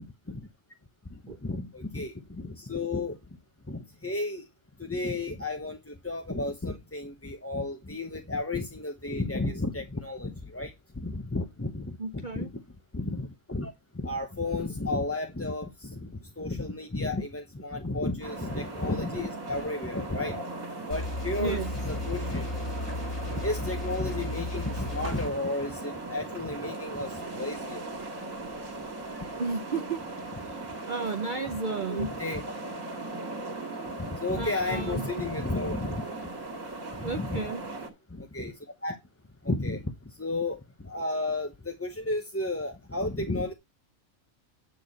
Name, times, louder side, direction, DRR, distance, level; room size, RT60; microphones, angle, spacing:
voice 1, 1.4-3.2 3.7-4.4 4.8-12.5 12.9-16.1 16.4-20.4 20.9-22.5 23.3-27.9 31.9-32.4 34.0-36.0 37.0-37.4 38.1-38.5 38.8-39.0 39.4-39.9 40.2-43.5, left 2 dB, 15° left, 0.7 m, -33 dB
voice 2, 12.0-12.5 21.4-21.7 29.4-30.0 30.9-32.1 34.4-35.1 37.0-37.6, right 4 dB, 45° right, 0.7 m, -32 dB
sound 1, 18.2-37.9, right 2 dB, 70° right, 2.5 m, -38 dB
sound 2, 20.9-25.3, left 2 dB, 50° left, 6.6 m, -34 dB
9.5 x 6.3 x 4.0 m
omnidirectional pair, 1.4 m